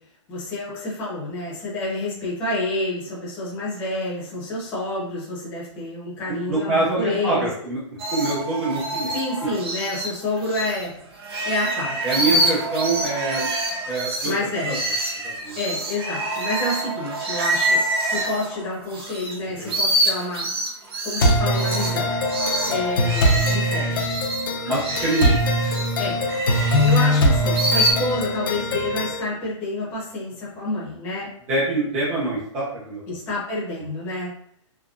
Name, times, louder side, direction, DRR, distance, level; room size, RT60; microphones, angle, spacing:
voice 1, 0.3-7.5 9.1-10.9 11.4-12.0 14.2-14.8 15.6-20.5 21.0-22.1 22.6-24.0 26.0-26.2 26.8-31.3 33.1-34.3, left 2 dB, 10° left, -7 dB, 0.8 m, -28 dB
voice 2, 6.3-7.8 8.1-9.1 12.0-13.5 13.8-14.7 15.2-15.5 19.6-19.7 24.6-25.4 31.5-33.0, right 2 dB, 5° right, -8 dB, 0.3 m, -25 dB
sound 1, 8.0-10.8 11.2-19.3 19.6-27.9, right 1 dB, 50° right, 0.8 m, -26 dB
sound 2, 21.2-29.2, equal, 45° left, 0.7 m, -22 dB
3.6 x 2.1 x 2.4 m, 0.67 s
hypercardioid pair, 180°, 16 cm